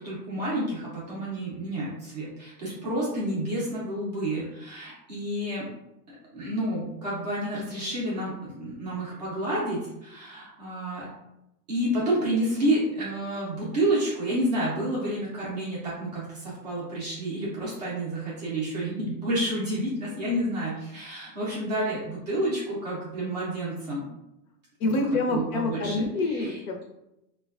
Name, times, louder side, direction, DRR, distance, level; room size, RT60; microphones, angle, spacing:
voice 1, 0.0-5.7 6.3-11.1 11.7-24.0 25.3-26.6, right 1 dB, 30° right, -7 dB, 0.4 m, -29 dB
voice 2, 24.8-26.8, left 2 dB, 60° left, 4 dB, 0.6 m, -27 dB
3.3 x 2.2 x 2.3 m, 0.89 s
supercardioid pair, 155°, 49 cm